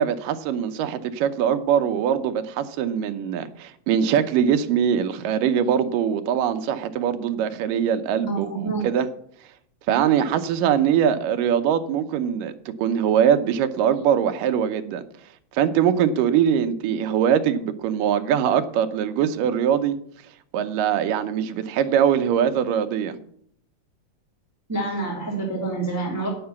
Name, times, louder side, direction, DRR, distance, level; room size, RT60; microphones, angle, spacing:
voice 1, 0.0-9.1 9.9-15.0 15.5-20.0 20.5-23.2, right 8 dB, 85° right, 9 dB, 2.4 m, -22 dB
voice 2, 8.2-8.9 24.7-26.3, right 3 dB, 5° right, -2 dB, 2.2 m, -27 dB
9.6 x 7.7 x 7.0 m, 0.66 s
omnidirectional pair, 3.8 m